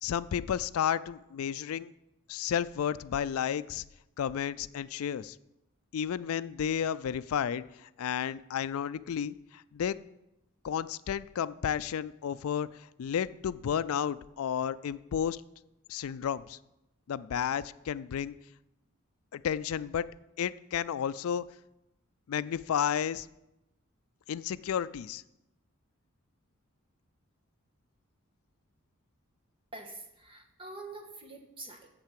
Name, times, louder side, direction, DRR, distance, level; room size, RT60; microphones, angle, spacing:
voice 1, 0.0-1.9 2.3-3.8 4.2-5.4 5.9-10.0 10.6-15.4 15.9-16.6 17.1-18.3 19.3-20.1 20.4-21.4 22.3-23.3 24.3-25.2, left 8 dB, 80° left, 16 dB, 0.4 m, -32 dB
voice 2, 29.7-31.9, right 2 dB, 25° right, 3 dB, 1.5 m, -45 dB
8.9 x 7.4 x 7.5 m, 0.90 s
head